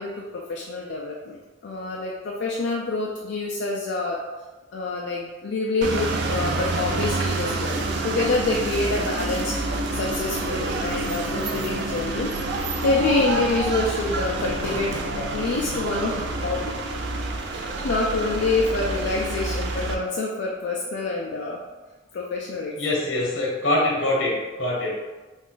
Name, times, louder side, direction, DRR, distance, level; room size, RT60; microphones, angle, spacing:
voice 1, 0.0-4.2 4.7-12.3 12.8-16.8 17.5-21.6 22.1-22.8, left 3 dB, 60° left, -2 dB, 0.3 m, -27 dB
sound 1, 5.8-19.9, right 2 dB, 60° right, 0.4 m, -28 dB
voice 2, 22.8-25.0, left 1 dB, 75° left, -3 dB, 0.9 m, -24 dB
2.5 x 2.4 x 3.6 m, 1.2 s
head